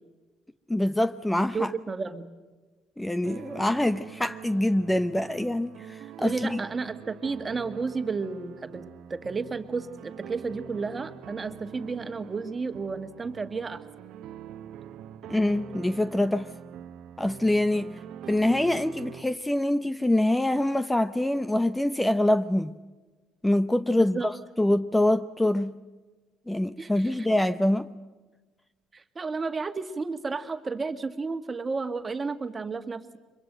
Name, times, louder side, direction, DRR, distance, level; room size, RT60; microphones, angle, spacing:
voice 1, 0.7-1.7 3.0-6.6 15.3-16.5 17.2-18.0 18.3-22.7 23.4-25.8 26.5-27.9, left 1 dB, 10° left, 13 dB, 0.7 m, -25 dB
voice 2, 1.5-2.3 6.2-13.8 24.0-24.3 26.8-27.3 28.9-33.2, right 4 dB, 30° right, 9 dB, 1.8 m, -32 dB
sound 1, 3.2-19.2, right 9 dB, 75° right, 1.0 m, -44 dB
24.5 x 22.5 x 7.9 m, 1.3 s
supercardioid pair, 80°, 0 cm